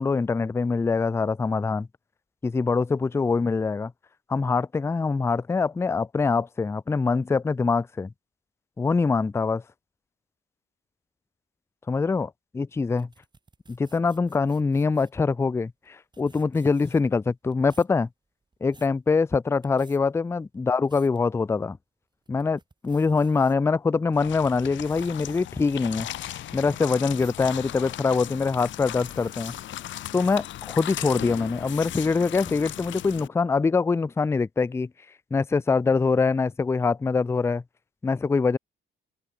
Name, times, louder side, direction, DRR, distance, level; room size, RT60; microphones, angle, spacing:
voice 1, 0.0-1.9 2.4-3.9 4.3-8.1 8.8-9.6 11.9-13.1 13.7-18.1 18.6-21.8 22.3-26.1 26.5-29.5 30.1-34.9 35.3-37.6 38.0-38.6, left 4 dB, 15° left, 0.3 m, -24 dB
sound 1, 12.8-15.2 15.8-15.9 16.1-17.2 17.5-18.0 18.4-19.0 19.5-20.0 20.5-21.2 21.7-21.8 22.2-23.5 24.1-28.3 28.8-29.6 30.3-30.6, right 3 dB, 20° right, 2.0 m, -55 dB
sound 2, 24.1-33.3, left 13 dB, 70° left, 0.8 m, -37 dB
open air
cardioid pair, 90°, 20 cm